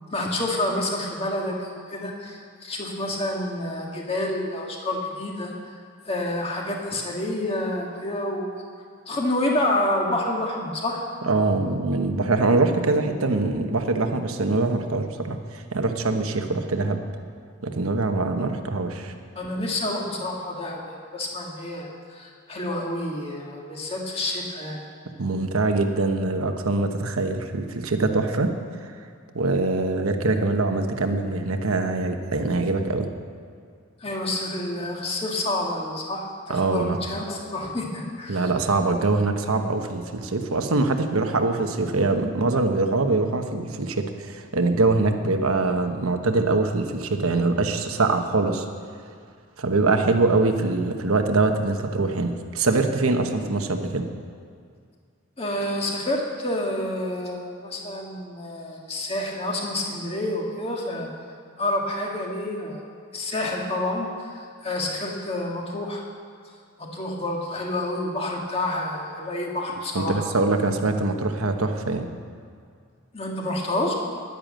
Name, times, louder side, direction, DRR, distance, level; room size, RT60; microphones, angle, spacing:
voice 1, 0.1-5.8 6.1-8.6 9.1-11.0 19.4-24.8 34.0-38.5 55.4-61.1 61.6-62.8 63.1-66.1 66.8-70.3 73.1-73.9, left 1 dB, 25° left, -1 dB, 1.8 m, -28 dB
voice 2, 11.2-17.0 17.6-19.1 25.2-28.5 28.8-28.9 29.3-33.1 36.5-37.0 38.3-48.6 49.6-54.1 69.9-72.1, right 3 dB, 85° right, 6 dB, 1.1 m, -23 dB
11.0 x 10.5 x 7.6 m, 2.2 s
head